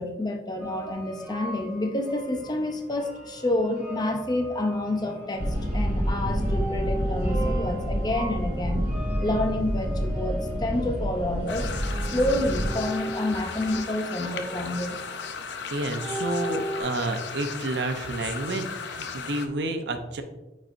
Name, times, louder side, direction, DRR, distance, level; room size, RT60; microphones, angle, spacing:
voice 1, 0.0-8.9 9.2-11.7 12.1-15.0, left 1 dB, 25° left, 4 dB, 0.6 m, -28 dB
sound 1, 0.6-16.8, right 1 dB, 10° right, 2.2 m, -38 dB
sound 2, 5.4-12.7, equal, 45° right, 1.8 m, -28 dB
sound 3, 11.5-19.5, left 5 dB, 85° left, 0.6 m, -36 dB
voice 2, 15.7-20.2, right 2 dB, 80° right, 7 dB, 0.7 m, -30 dB
9.2 x 4.3 x 2.6 m, 1.0 s
head